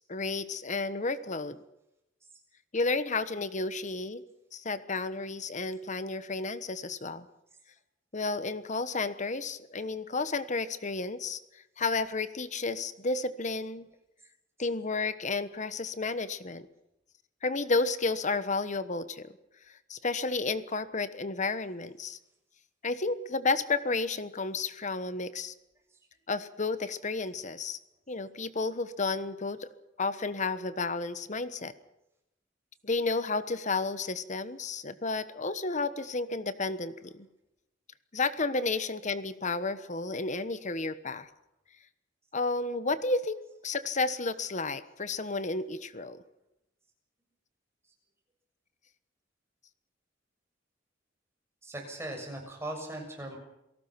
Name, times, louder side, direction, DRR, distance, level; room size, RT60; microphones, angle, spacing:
voice 1, 0.0-1.6 2.7-4.2 4.5-7.3 8.1-11.4 11.8-13.9 14.6-16.7 17.4-19.3 19.9-22.2 22.8-25.5 26.3-27.8 28.1-29.7 30.0-31.7 32.8-37.3 38.1-41.3 42.3-46.2, left 3 dB, 40° left, 13 dB, 1.2 m, -32 dB
voice 2, 51.6-53.4, right 1 dB, 15° right, 1 dB, 6.8 m, -39 dB
28.0 x 18.0 x 5.9 m, 0.85 s
head